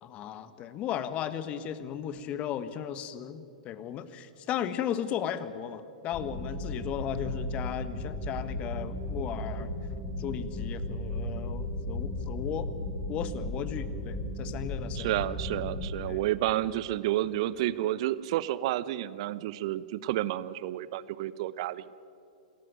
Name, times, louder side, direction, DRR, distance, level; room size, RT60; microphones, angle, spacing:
voice 1, 0.0-9.7 10.2-12.7 13.1-15.1 16.1-16.2, left 9 dB, 30° left, 13 dB, 1.4 m, -36 dB
sound 1, 6.1-15.8, left 1 dB, 10° left, 7.9 m, -35 dB
voice 2, 15.0-21.9, right 14 dB, 50° right, 17 dB, 0.8 m, -30 dB
27.5 x 14.0 x 9.2 m, 2.6 s
figure-of-eight pair, 105°, 4 cm